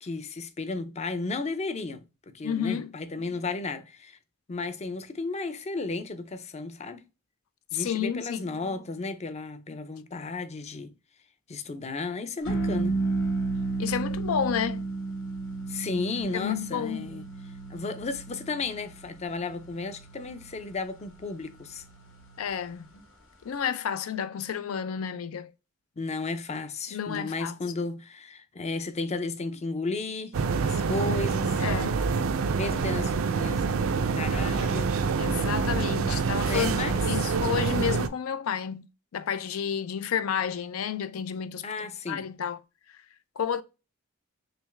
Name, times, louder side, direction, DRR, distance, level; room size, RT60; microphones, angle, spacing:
voice 1, 0.0-4.2 4.5-7.1 7.7-10.9 11.5-13.0 15.7-17.3 17.7-21.8 26.0-30.4 30.6-31.6 32.6-34.9 36.4-37.0 41.6-42.3, left 3 dB, 30° left, 0.5 m, -34 dB
voice 2, 2.4-2.9 7.7-8.4 13.8-14.8 16.3-17.1 22.4-22.9 23.4-25.5 26.9-27.5 31.6-32.0 35.2-36.8 37.1-38.9 39.1-42.6 43.4-43.6, left 8 dB, 85° left, 0.4 m, -30 dB
sound 1, 12.5-23.0, right 3 dB, 70° left, 1.1 m, -34 dB
sound 2, 30.3-38.1, right 5 dB, 75° right, 0.4 m, -26 dB
3.3 x 3.0 x 3.3 m
head